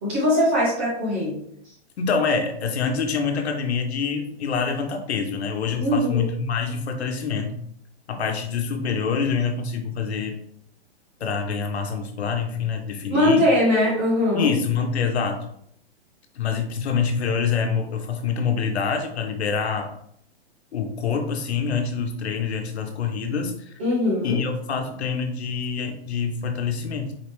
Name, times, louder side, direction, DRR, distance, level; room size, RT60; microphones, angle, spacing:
voice 1, 0.0-1.4 5.8-6.2 13.1-14.5 23.8-24.4, left 1 dB, 10° right, -6 dB, 0.4 m, -21 dB
voice 2, 2.0-7.6 8.1-10.4 11.2-13.4 14.3-15.4 16.3-19.9 20.7-23.5 24.2-27.1, left 5 dB, 75° left, 4 dB, 1.1 m, -26 dB
4.6 x 3.3 x 3.0 m, 0.69 s
hypercardioid pair, 170°, 32 cm